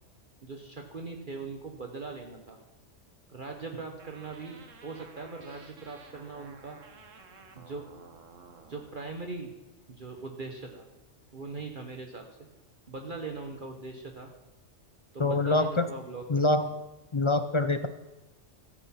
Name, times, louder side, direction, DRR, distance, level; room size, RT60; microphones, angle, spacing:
voice 1, 0.4-2.6 3.3-6.8 7.6-7.8 8.7-9.5 9.9-10.8 11.3-12.2 12.9-14.3 15.1-16.4, right 3 dB, 45° right, 3 dB, 1.2 m, -40 dB
sound 1, 4.0-8.9, right 5 dB, 90° right, 1.6 m, -53 dB
voice 2, 15.2-15.9 16.3-16.7 17.1-17.9, left 2 dB, 40° left, 11 dB, 0.4 m, -25 dB
14.0 x 8.1 x 5.7 m, 1.1 s
omnidirectional pair, 1.3 m